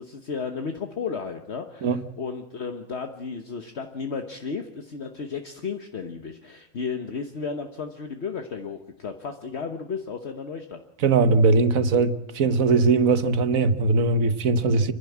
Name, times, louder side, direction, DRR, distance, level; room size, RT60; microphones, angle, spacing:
voice 1, 0.0-10.8, left 5 dB, 55° left, 1.4 m, -33 dB
voice 2, 11.0-14.9, right 3 dB, 85° right, 1.5 m, -20 dB
30.0 x 11.5 x 8.5 m
omnidirectional pair, 1.4 m